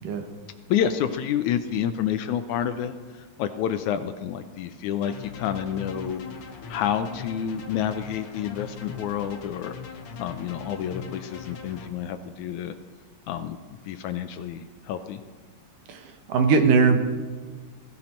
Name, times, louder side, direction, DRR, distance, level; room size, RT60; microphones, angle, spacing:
voice 1, 0.7-6.2 6.7-9.7 10.2-12.8 13.3-13.6 13.8-15.2, left 9 dB, 75° left, 9 dB, 1.9 m, -29 dB
sound 1, 5.0-11.9, left 5 dB, 55° left, 1.8 m, -40 dB
voice 2, 15.9-17.0, right 5 dB, 75° right, 5 dB, 2.9 m, -20 dB
21.5 x 14.5 x 4.4 m, 1.4 s
omnidirectional pair, 3.8 m